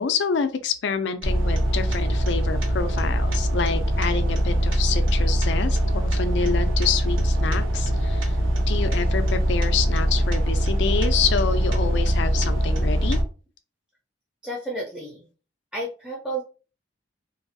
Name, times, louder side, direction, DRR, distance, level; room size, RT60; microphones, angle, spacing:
voice 1, 0.0-8.4 8.7-13.2, left 6 dB, 65° left, 10 dB, 0.4 m, -27 dB
sound 1, 1.2-13.2, equal, 80° right, 0.6 m, -22 dB
voice 2, 14.4-15.3 15.7-16.4, right 1 dB, 5° right, -4 dB, 0.5 m, -31 dB
2.6 x 2.3 x 2.5 m, 0.35 s
head